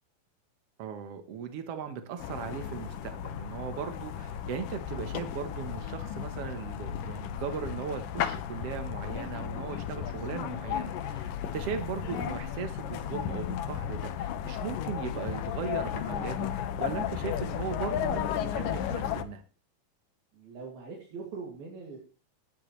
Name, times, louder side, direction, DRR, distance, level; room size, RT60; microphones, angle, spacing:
voice 1, 0.8-19.4, right 7 dB, 65° right, 7 dB, 1.5 m, -38 dB
sound 1, 2.2-19.2, left 9 dB, 75° left, 2.5 m, -34 dB
voice 2, 20.3-22.0, right 4 dB, 85° right, -2 dB, 4.3 m, -42 dB
17.5 x 10.0 x 3.2 m, 0.35 s
omnidirectional pair, 4.1 m